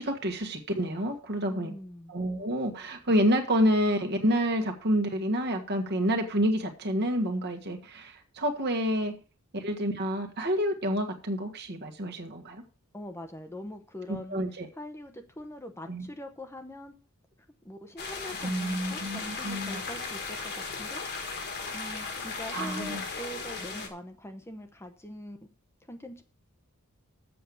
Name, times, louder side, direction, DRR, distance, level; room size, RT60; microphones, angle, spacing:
voice 1, 0.0-1.7 2.1-9.1 9.5-12.6 14.1-14.7 15.9-16.1 18.4-19.8 22.5-23.0, equal, 50° right, 3 dB, 1.6 m, -28 dB
voice 2, 1.4-2.1 12.9-14.4 14.8-17.0 17.6-20.5 20.8-21.0 21.7-25.4 25.9-26.2, equal, 10° left, 6 dB, 0.9 m, -43 dB
sound 1, 18.0-23.9, left 4 dB, 50° left, 1.8 m, -36 dB
7.7 x 6.6 x 7.0 m, 0.37 s
head